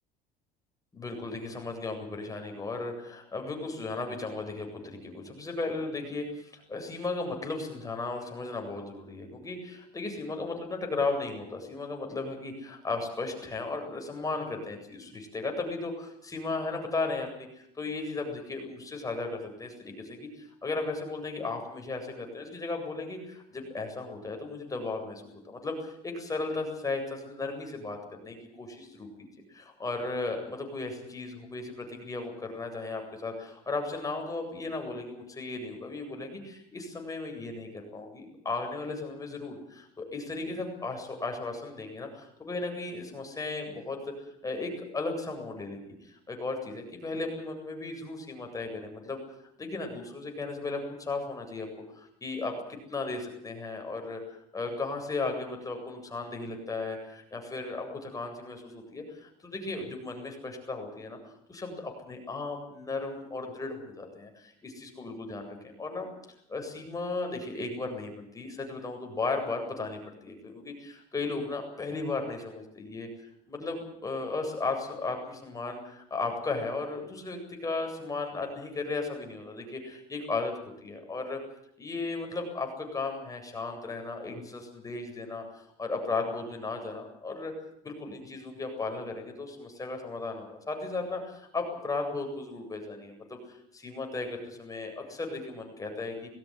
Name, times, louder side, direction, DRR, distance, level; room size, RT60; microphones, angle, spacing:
voice 1, 0.9-29.3 29.5-44.1 44.4-49.2 49.6-51.7 52.0-66.1 66.5-73.1 73.5-80.5 80.8-81.4 81.8-87.5 87.8-96.3, left 3 dB, 20° left, 3 dB, 7.9 m, -35 dB
20.5 x 16.0 x 9.6 m, 0.75 s
supercardioid pair, 95°, 16 cm